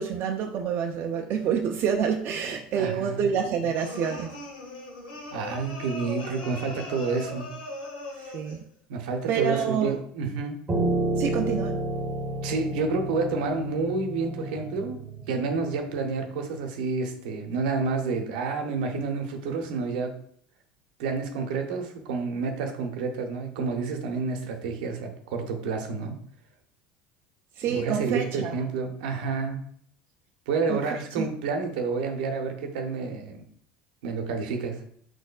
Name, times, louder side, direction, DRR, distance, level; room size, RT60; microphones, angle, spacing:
voice 1, 0.0-4.3 8.2-8.6 9.3-10.0 11.2-11.8 27.6-28.6 30.7-30.8 31.2-31.3, right 7 dB, 50° right, 3 dB, 0.4 m, -27 dB
voice 2, 2.7-3.3 5.3-7.5 8.9-10.6 12.4-15.0 15.3-20.1 21.0-26.1 27.7-29.6 30.5-33.4 34.0-34.8, right 4 dB, 75° right, 5 dB, 0.8 m, -29 dB
sound 1, 3.7-8.6, left 2 dB, 90° left, 1.5 m, -39 dB
Piano, 10.7-16.0, right 2 dB, 20° right, 1.1 m, -30 dB
4.6 x 4.2 x 2.3 m, 0.63 s
hypercardioid pair, 80°, 5 cm